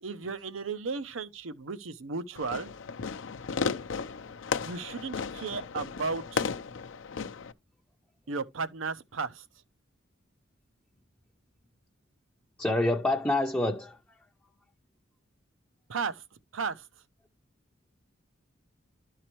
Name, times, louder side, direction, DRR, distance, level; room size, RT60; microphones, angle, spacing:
voice 1, 0.0-2.7 4.6-6.5 8.3-9.4 15.9-16.2 16.5-16.9, right 4 dB, 90° right, 0.7 m, -34 dB
Fireworks, 2.4-7.5, left 5 dB, 70° left, 0.5 m, -34 dB
voice 2, 12.6-14.0, left 2 dB, 10° left, 0.5 m, -27 dB
12.0 x 4.7 x 3.0 m
head